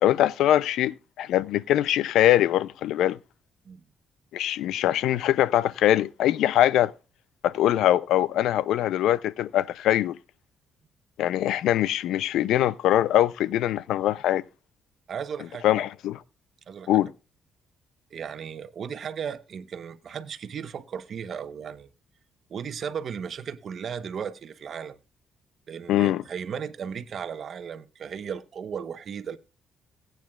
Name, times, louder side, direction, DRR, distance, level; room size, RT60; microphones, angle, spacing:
voice 1, 0.0-3.2 4.3-6.9 7.4-10.2 11.2-14.4 15.6-16.2 16.9-17.1 25.9-26.2, left 12 dB, 85° left, 0.4 m, -22 dB
voice 2, 15.1-15.8 16.7-16.9 18.1-21.9 22.5-25.0 25.7-29.4, right 7 dB, 55° right, 0.9 m, -35 dB
17.5 x 9.1 x 2.3 m
cardioid pair, 90°, 0 cm